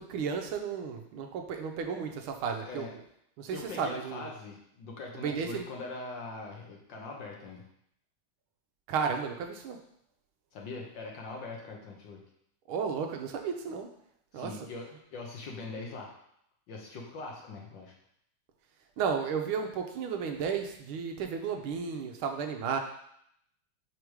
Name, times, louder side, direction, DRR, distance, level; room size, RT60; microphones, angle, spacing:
voice 1, 0.0-2.9 3.4-4.3 5.1-5.6 8.9-9.8 12.7-13.9 14.3-14.6 19.0-22.8, right 6 dB, 80° right, 4 dB, 1.5 m, -33 dB
voice 2, 3.5-7.6 10.5-12.2 14.3-16.1 16.7-17.9, left 3 dB, 60° left, 0 dB, 1.6 m, -42 dB
5.0 x 5.0 x 4.7 m, 0.73 s
omnidirectional pair, 2.4 m